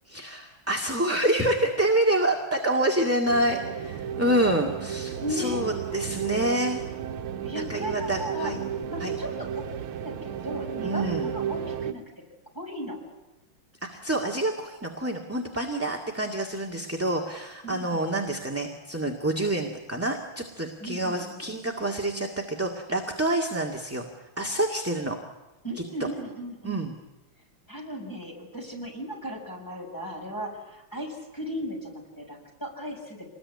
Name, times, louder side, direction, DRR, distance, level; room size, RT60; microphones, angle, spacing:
voice 1, 0.1-6.8 7.5-8.6 9.0-9.2 10.8-11.3 13.9-24.1 24.4-25.2 26.6-26.9, right 1 dB, 5° right, 0 dB, 1.9 m, -27 dB
sound 1, 3.3-11.9, right 8 dB, 75° right, 1.9 m, -33 dB
voice 2, 5.2-5.7 7.4-8.5 8.9-9.7 10.0-12.0 12.5-13.0 17.6-18.5 20.8-21.4 25.6-26.9 27.7-33.3, equal, 10° left, 1 dB, 6.8 m, -36 dB
27.0 x 21.0 x 9.8 m, 1.0 s
omnidirectional pair, 2.4 m